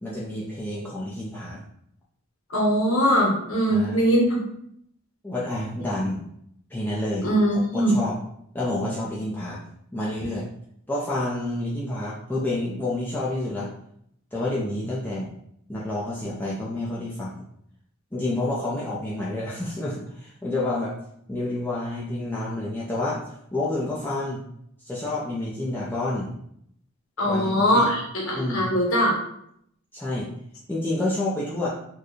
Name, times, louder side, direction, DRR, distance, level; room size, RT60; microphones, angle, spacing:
voice 1, 0.0-1.6 3.7-4.0 5.2-6.2 6.7-8.1 8.5-9.6 9.9-10.5 10.9-13.7 14.3-15.3 15.7-17.4 18.1-21.0 21.3-23.2 23.5-24.4 24.8-26.3 27.2-27.9 28.3-28.7 29.9-30.3 30.7-31.7, left 1 dB, 10° left, -7 dB, 0.5 m, -29 dB
voice 2, 2.5-4.4 7.2-7.9 27.2-29.1, equal, 70° left, -3 dB, 1.1 m, -21 dB
4.4 x 2.2 x 3.1 m, 0.72 s
head